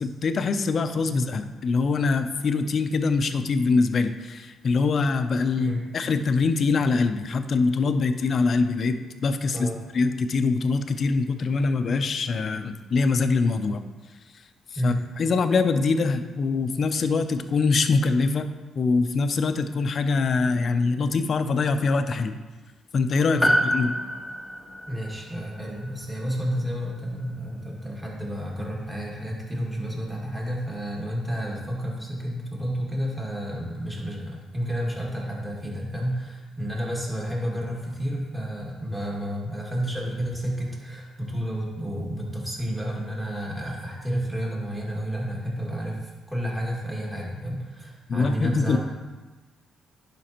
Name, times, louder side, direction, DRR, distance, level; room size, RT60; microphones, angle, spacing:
voice 1, 0.0-9.7 9.9-13.8 14.8-18.5 18.8-22.3 22.9-23.4 23.7-24.0 48.1-48.8, left 4 dB, 50° left, 9 dB, 0.5 m, -23 dB
voice 2, 5.6-5.9 9.5-9.8 14.8-15.0 23.3-23.5 24.9-48.8, equal, 10° right, -4 dB, 2.1 m, -31 dB
Piano, 23.4-28.0 28.3-28.4, equal, 5° left, 0.9 m, -29 dB
11.0 x 5.1 x 3.0 m, 1.2 s
cardioid pair, 90°, 0 cm